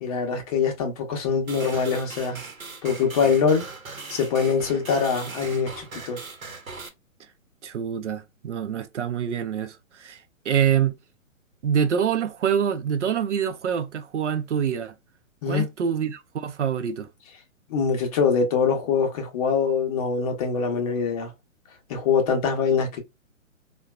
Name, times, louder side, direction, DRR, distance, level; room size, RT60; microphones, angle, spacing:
voice 1, 0.0-2.4 2.8-3.6 4.1-6.2 15.4-15.7 17.7-21.3 21.9-23.0, left 6 dB, 25° left, 0.7 m, -23 dB
sound 1, 1.5-6.9, right 4 dB, 90° right, 0.9 m, -39 dB
voice 2, 7.6-10.2 10.4-11.0 11.6-14.9 15.5-17.1, right 8 dB, 60° right, 0.6 m, -25 dB
3.7 x 2.3 x 2.2 m
figure-of-eight pair, 130°, 40 cm